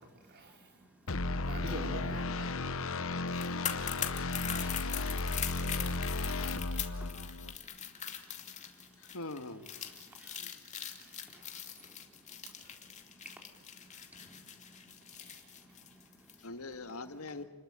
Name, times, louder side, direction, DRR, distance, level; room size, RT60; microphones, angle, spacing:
voice 1, 0.0-1.5 2.7-9.2 9.7-10.5 10.8-16.5 16.8-17.1, equal, 5° right, 3 dB, 4.3 m, -60 dB
sound 1, 1.1-7.6, left 3 dB, 70° left, 1.1 m, -34 dB
voice 2, 1.5-3.4 15.3-15.4, right 1 dB, 50° right, 3 dB, 4.9 m, -44 dB
sound 2, 3.3-16.4 16.7-16.9, left 8 dB, 35° left, 2.5 m, -41 dB
voice 3, 9.0-9.7 16.4-17.4, left 2 dB, 85° left, 8 dB, 1.9 m, -43 dB
30.0 x 21.0 x 9.0 m, 1.1 s
head